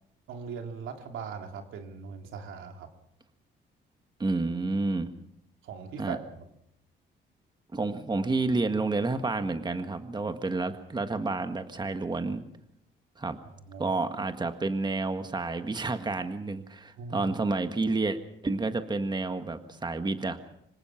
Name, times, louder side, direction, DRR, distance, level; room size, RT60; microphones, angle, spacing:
voice 1, 0.3-2.9 5.6-6.2 13.7-14.0 17.0-17.3, right 6 dB, 85° right, 4 dB, 2.9 m, -39 dB
voice 2, 4.2-5.1 6.0-6.2 7.7-12.4 13.2-13.4 13.8-18.2 18.4-20.4, right 3 dB, 20° right, 8 dB, 1.7 m, -30 dB
25.5 x 18.0 x 5.9 m, 0.77 s
cardioid pair, 90°, 20 cm